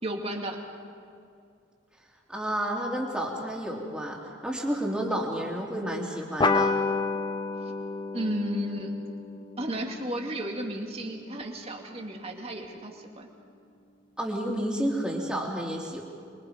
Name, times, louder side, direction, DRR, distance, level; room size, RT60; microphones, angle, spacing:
voice 1, 0.0-0.6 7.6-7.7 8.1-8.9 9.6-13.3, equal, 30° right, 2 dB, 2.4 m, -33 dB
voice 2, 2.3-6.8 14.2-16.0, equal, 5° right, -2 dB, 3.2 m, -30 dB
sound 1, 6.4-11.3, left 3 dB, 25° left, 0.6 m, -30 dB
26.0 x 23.0 x 5.2 m, 2.4 s
head